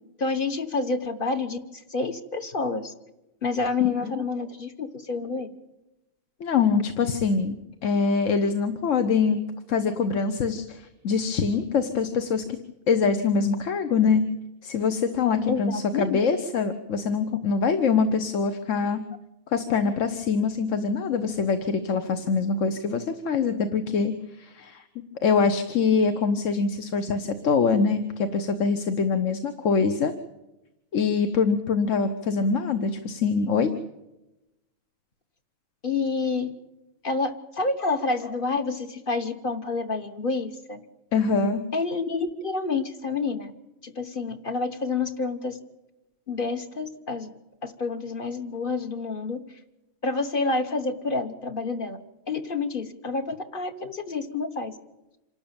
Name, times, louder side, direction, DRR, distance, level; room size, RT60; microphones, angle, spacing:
voice 1, 0.2-1.6 1.9-2.9 3.4-5.5 15.5-16.2 35.8-36.5 37.0-40.8 41.7-43.5 43.8-45.6 46.3-47.3 47.6-49.4 50.0-52.0 52.3-54.7, left 3 dB, 45° left, 6 dB, 1.3 m, -28 dB
voice 2, 6.4-7.6 7.8-9.4 9.7-12.6 12.9-14.2 14.6-19.0 19.5-24.8 25.2-30.1 30.9-33.7 41.1-41.6, left 5 dB, 70° left, 9 dB, 1.3 m, -24 dB
26.5 x 12.5 x 8.9 m, 0.98 s
omnidirectional pair, 1.4 m